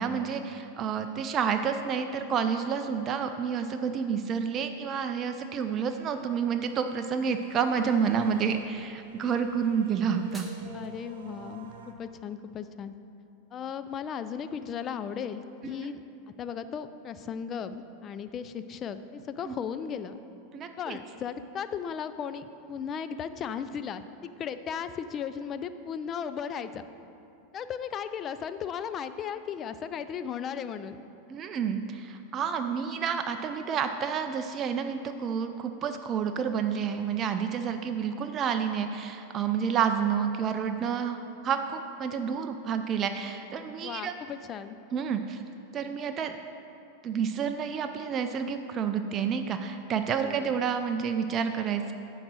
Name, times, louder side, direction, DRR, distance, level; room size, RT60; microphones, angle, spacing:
voice 1, 0.0-10.5 15.6-15.9 19.4-19.6 20.5-21.0 31.3-44.1 44.9-45.4 45.7-46.4 47.0-51.9, right 7 dB, 35° right, 7 dB, 0.4 m, -29 dB
sound 1, 4.7-11.9, right 2 dB, 80° right, 0.8 m, -49 dB
sound 2, 9.9-10.9, equal, ahead, 1.3 m, -50 dB
voice 2, 10.7-11.7 12.0-12.9 13.5-16.0 16.4-20.2 20.8-26.8 27.5-31.1 43.8-44.8 50.2-50.5, left 7 dB, 35° left, 11 dB, 0.4 m, -36 dB
9.7 x 3.9 x 6.2 m, 2.7 s
hypercardioid pair, 110°, 0 cm